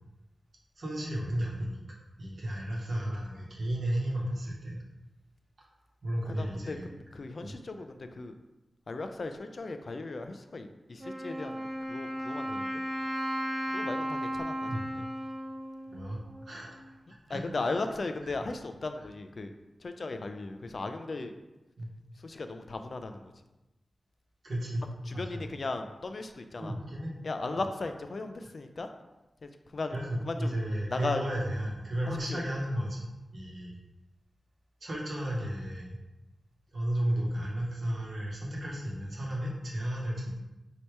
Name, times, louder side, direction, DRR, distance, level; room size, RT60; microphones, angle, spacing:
voice 1, 0.8-1.8 2.2-4.8 6.0-6.8 14.7-14.8 15.9-16.8 17.3-17.4 21.8-21.9 24.4-24.8 25.1-25.2 26.6-27.1 29.9-33.1 33.3-33.7 34.8-36.0 36.7-40.3, right 1 dB, 60° right, -3 dB, 1.1 m, -33 dB
voice 2, 6.3-8.4 8.9-12.7 13.7-15.0 17.3-19.5 19.8-21.3 22.2-23.3 25.1-26.7 27.2-28.9 29.4-29.9 30.2-30.6 30.9-31.2 32.3-32.4, left 3 dB, 50° left, 7 dB, 0.3 m, -37 dB
Wind instrument woodwind instrument, 11.0-16.7, equal, 30° right, 0.6 m, -35 dB
3.2 x 2.8 x 4.5 m, 1.0 s
wide cardioid pair, 110°, 0 cm